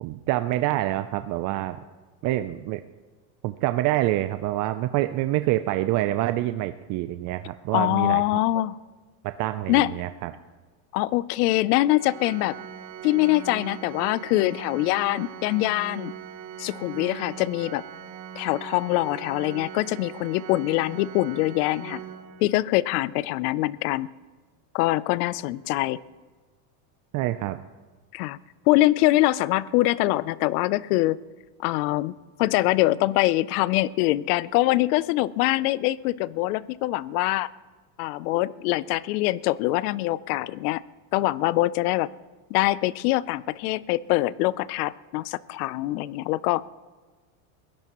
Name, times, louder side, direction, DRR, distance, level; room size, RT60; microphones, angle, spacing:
voice 1, 0.0-1.8 2.2-2.8 3.4-8.2 9.2-10.3 27.1-27.6, right 15 dB, 40° right, 11 dB, 0.5 m, -26 dB
voice 2, 7.7-8.8 9.7-9.9 10.9-12.6 13.0-16.1 16.6-17.8 18.4-22.0 22.4-24.1 24.7-26.0 28.1-28.4 28.7-31.2 31.6-37.5 38.0-40.8 41.1-42.1 42.5-46.6, left 17 dB, 65° left, 20 dB, 0.7 m, -24 dB
Organ, 12.0-22.8, right 9 dB, 75° right, 2.1 m, -40 dB
22.0 x 17.0 x 3.0 m, 1.3 s
supercardioid pair, 120°, 48 cm